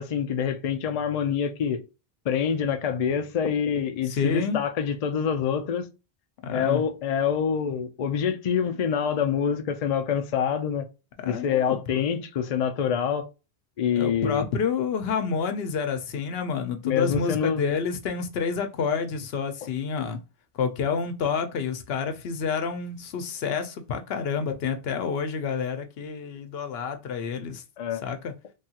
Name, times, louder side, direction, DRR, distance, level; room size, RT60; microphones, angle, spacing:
voice 1, 0.0-1.8 2.3-5.9 6.5-10.8 11.2-13.3 13.8-14.4 16.8-17.6 27.8-28.0, left 7 dB, 55° left, 0.4 m, -26 dB
voice 2, 4.1-4.6 6.4-6.8 11.2-12.1 14.0-20.2 20.5-27.6 28.0-28.3, left 6 dB, 75° left, 0.8 m, -29 dB
3.3 x 2.3 x 2.7 m
omnidirectional pair, 1.0 m